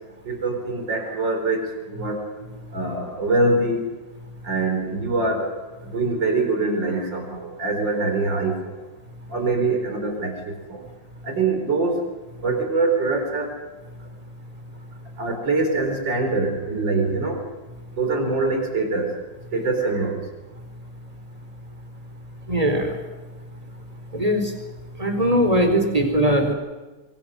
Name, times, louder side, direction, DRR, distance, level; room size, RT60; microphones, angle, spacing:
voice 1, 0.2-2.2 2.7-3.8 4.4-5.6 5.8-8.8 9.3-10.8 11.2-12.0 12.4-13.5 15.2-17.4 18.0-19.2 19.5-20.3, right 3 dB, 75° right, 5 dB, 5.1 m, -24 dB
voice 2, 22.5-22.9 24.1-24.4 25.0-26.5, equal, 20° right, 4 dB, 4.2 m, -20 dB
27.0 x 23.5 x 6.4 m, 1.2 s
omnidirectional pair, 2.0 m